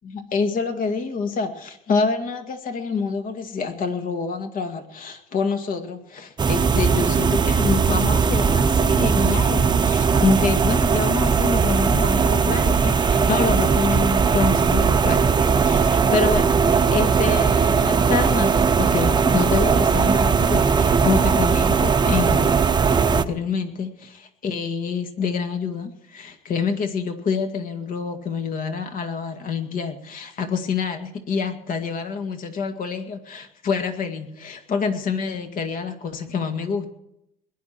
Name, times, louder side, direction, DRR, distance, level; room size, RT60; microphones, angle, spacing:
voice 1, 0.0-22.7 23.1-36.9, left 5 dB, 55° left, 6 dB, 2.0 m, -27 dB
sound 1, 6.4-23.3, right 5 dB, 25° right, 0.8 m, -19 dB
21.5 x 11.0 x 4.5 m, 0.78 s
cardioid pair, 110°, 17 cm